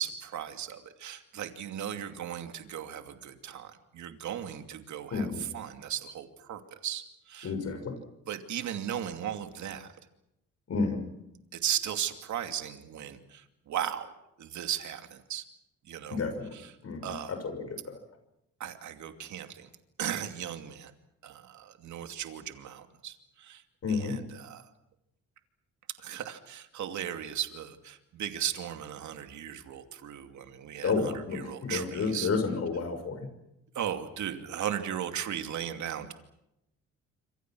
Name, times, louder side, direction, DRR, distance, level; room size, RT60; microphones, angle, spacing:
voice 1, 0.0-7.5 8.3-9.9 11.5-14.1 14.4-15.4 15.9-16.2 16.5-16.6 17.0-17.3 18.6-19.7 20.0-20.9 21.2-23.6 23.9-24.7 26.0-32.3 33.7-36.1, right 10 dB, 70° right, 7 dB, 2.6 m, -36 dB
voice 2, 5.1-5.4 7.4-7.9 10.7-11.0 16.1-16.5 16.8-18.0 23.8-24.2 30.8-33.3, left 4 dB, 55° left, 7 dB, 6.4 m, -31 dB
27.0 x 26.5 x 6.2 m, 0.86 s
cardioid pair, 90°, 30 cm